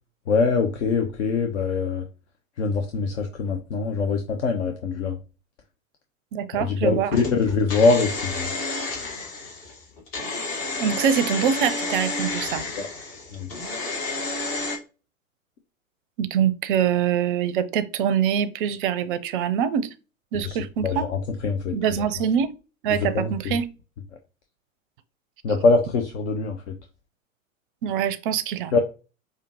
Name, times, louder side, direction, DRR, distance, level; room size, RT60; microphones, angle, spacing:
voice 1, 0.3-2.0 2.6-5.2 6.6-8.5 12.8-12.9 13.3-13.5 20.4-21.8 23.1-23.6 25.4-26.7 28.7-28.8, left 4 dB, 60° left, 0.7 m, -23 dB
voice 2, 6.3-7.2 10.8-12.6 16.2-19.9 20.3-21.1 21.7-22.5 22.8-23.7 27.8-28.8, right 8 dB, 40° right, 0.5 m, -24 dB
sound 1, 7.1-14.8, left 3 dB, 45° left, 1.5 m, -30 dB
5.0 x 2.4 x 2.8 m
figure-of-eight pair, 95°, 41 cm